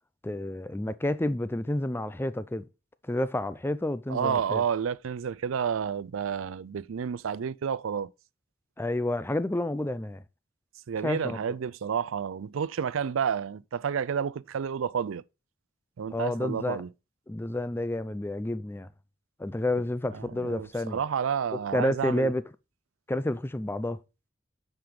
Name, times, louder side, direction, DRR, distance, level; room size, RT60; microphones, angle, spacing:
voice 1, 0.2-2.7 3.0-4.6 8.8-10.2 11.0-11.4 16.1-16.8 17.3-18.9 19.4-21.0 21.7-22.4 23.1-24.0, left 1 dB, 10° left, 0.5 m, -30 dB
voice 2, 4.1-8.1 10.9-15.2 16.0-16.9 20.1-22.3, right 7 dB, 75° right, 0.4 m, -30 dB
8.6 x 5.2 x 3.7 m
head